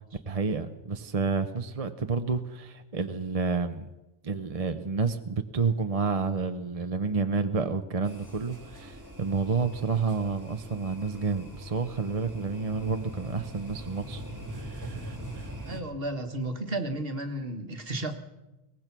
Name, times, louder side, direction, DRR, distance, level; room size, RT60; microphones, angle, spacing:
voice 1, 0.3-3.9 4.2-14.2 14.5-15.5, right 4 dB, 35° right, 8 dB, 0.9 m, -30 dB
sound 1, 8.0-15.8, right 1 dB, 15° right, 2.5 m, -42 dB
voice 2, 15.7-18.2, right 1 dB, 50° right, 6 dB, 1.9 m, -33 dB
22.5 x 19.0 x 6.1 m, 1.0 s
omnidirectional pair, 1.3 m